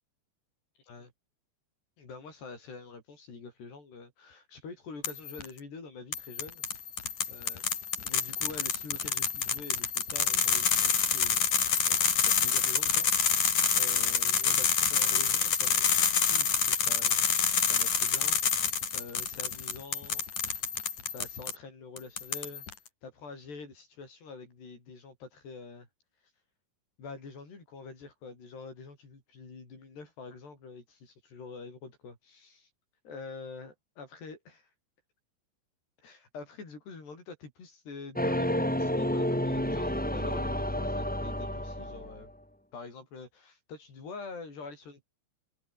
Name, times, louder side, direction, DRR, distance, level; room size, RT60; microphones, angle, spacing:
voice 1, 2.0-6.6 7.3-7.6 8.0-11.5 11.9-13.4 13.7-17.2 17.6-20.2 21.1-22.7 23.0-25.9 27.0-32.7 33.0-34.7 36.0-42.3 42.7-45.0, left 4 dB, 65° left, 9.7 m, -46 dB
sound 1, 5.0-5.5 6.1-21.6 22.0-22.7, left 7 dB, 45° left, 4.2 m, -27 dB
sound 2, 38.1-42.3, equal, 10° left, 0.5 m, -30 dB
omnidirectional pair, 5.0 m